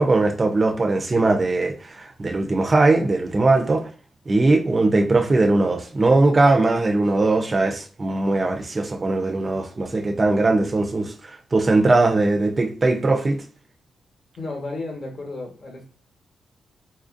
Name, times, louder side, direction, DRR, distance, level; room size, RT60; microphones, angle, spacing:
voice 1, 0.0-3.9 4.3-11.1 11.5-13.4, right 2 dB, 25° right, 0.4 m, -20 dB
voice 2, 14.4-15.8, left 2 dB, 40° left, 1.0 m, -33 dB
3.9 x 2.5 x 2.5 m
wide cardioid pair, 150°, 0 cm